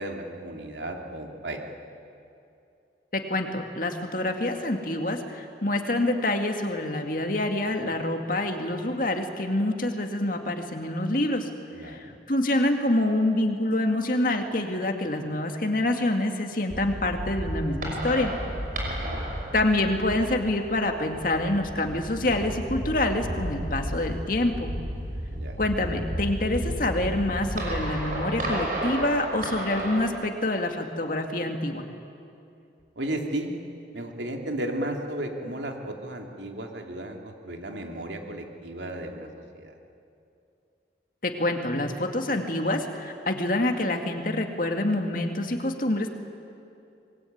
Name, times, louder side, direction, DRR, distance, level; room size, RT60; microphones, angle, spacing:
voice 1, 0.0-1.6 11.7-12.2 18.8-19.2 25.3-25.6 33.0-33.5 33.9-39.7, right 1 dB, 90° right, 2 dB, 2.9 m, -34 dB
voice 2, 3.1-11.5 11.8-18.3 19.5-24.7 25.6-31.8 41.2-46.1, left 1 dB, 50° left, 4 dB, 2.3 m, -26 dB
sound 1, 16.7-30.1, equal, 50° right, 5.7 m, -33 dB
25.5 x 21.5 x 9.5 m, 2.6 s
head